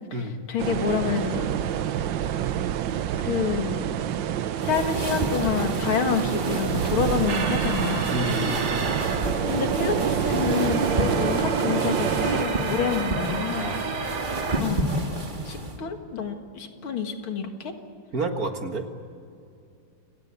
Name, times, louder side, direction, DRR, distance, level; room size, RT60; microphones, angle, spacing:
voice 1, 0.2-1.4 3.2-3.8 4.6-8.1 9.5-13.7 14.6-14.9 15.5-17.7, left 6 dB, 75° left, 5 dB, 2.7 m, -28 dB
sound 1, 0.6-12.4, right 10 dB, 70° right, 1.4 m, -28 dB
sound 2, 4.6-15.8, right 1 dB, 25° right, 1.8 m, -31 dB
sound 3, 7.3-14.6, right 4 dB, 85° right, 2.9 m, -30 dB
voice 2, 8.1-8.6 13.5-13.8 15.3-15.5 18.1-18.9, right 2 dB, 45° right, 5 dB, 1.9 m, -29 dB
29.5 x 18.0 x 8.3 m, 2.5 s
omnidirectional pair, 2.4 m